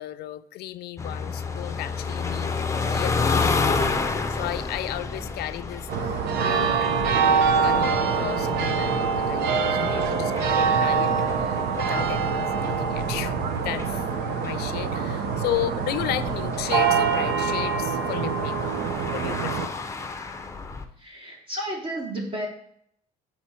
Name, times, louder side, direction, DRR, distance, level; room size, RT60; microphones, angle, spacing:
voice 1, 0.0-2.5 2.8-3.6 4.3-6.9 7.2-11.1 11.4-14.0 14.4-18.8 19.1-19.7, left 14 dB, 70° left, 13 dB, 0.4 m, -34 dB
sound 1, 1.0-20.8, left 4 dB, 15° left, 0.6 m, -31 dB
sound 2, 5.9-19.7, right 5 dB, 75° right, 0.7 m, -24 dB
voice 2, 21.0-22.5, right 1 dB, 30° right, 0 dB, 1.0 m, -32 dB
4.3 x 4.2 x 5.7 m, 0.68 s
cardioid pair, 110°, 17 cm